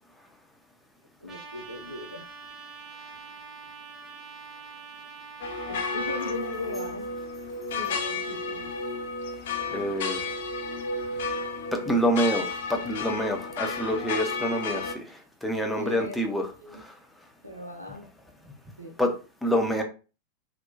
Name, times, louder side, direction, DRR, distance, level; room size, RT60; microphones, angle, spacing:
voice 1, 1.2-2.3 5.6-7.1 7.7-8.7 15.7-16.3 16.6-16.8 17.4-18.1 18.8-19.0, left 2 dB, 85° right, 5 dB, 0.5 m, -38 dB
Trumpet, 1.3-6.4, right 5 dB, 10° right, 1.0 m, -44 dB
sound 1, 5.4-15.0, left 3 dB, 55° left, 0.4 m, -32 dB
voice 2, 9.7-10.3 11.7-16.9 19.0-19.1 19.4-19.8, equal, 5° left, 2 dB, 0.5 m, -27 dB
2.9 x 2.0 x 2.4 m, 0.34 s
figure-of-eight pair, 90°, 0 cm